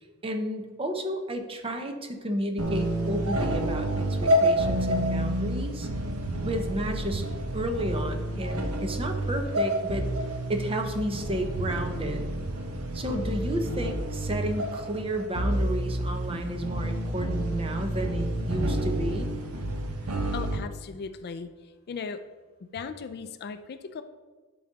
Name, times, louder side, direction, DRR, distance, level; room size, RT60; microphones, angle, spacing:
voice 1, 0.2-5.9 6.4-7.3 7.5-10.1 10.5-12.3 12.9-19.3, right 1 dB, 25° right, 5 dB, 0.7 m, -32 dB
sound 1, 2.6-20.6, right 1 dB, 75° right, 1.0 m, -29 dB
voice 2, 20.3-21.5 21.9-22.2 22.7-24.0, left 5 dB, 45° left, 10 dB, 0.4 m, -37 dB
11.0 x 3.9 x 4.0 m, 1.3 s
head